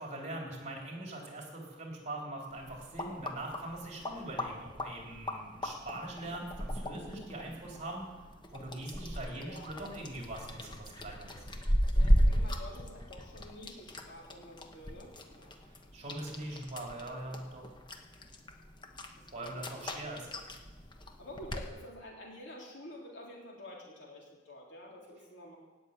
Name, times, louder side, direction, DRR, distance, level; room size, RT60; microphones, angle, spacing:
voice 1, 0.0-8.1 8.5-11.4 15.9-17.6 19.3-20.2, right 1 dB, 40° right, -1 dB, 3.7 m, -42 dB
sound 1, 2.5-21.7, equal, 25° left, 1.2 m, -35 dB
voice 2, 9.4-9.7 11.9-15.5 19.4-20.3 21.2-25.6, left 1 dB, 70° left, -2 dB, 3.7 m, -49 dB
17.0 x 6.9 x 9.0 m, 1.3 s
head